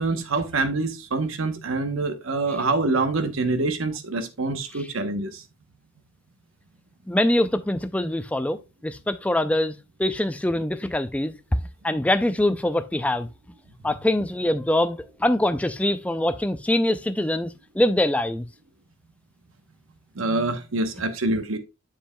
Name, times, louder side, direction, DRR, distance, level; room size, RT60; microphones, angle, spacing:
voice 1, 0.0-5.4 20.1-21.6, right 3 dB, 85° right, 1.0 m, -25 dB
voice 2, 7.1-11.3 11.8-13.3 13.8-18.5, left 1 dB, 5° left, 0.4 m, -24 dB
7.3 x 7.2 x 2.2 m
head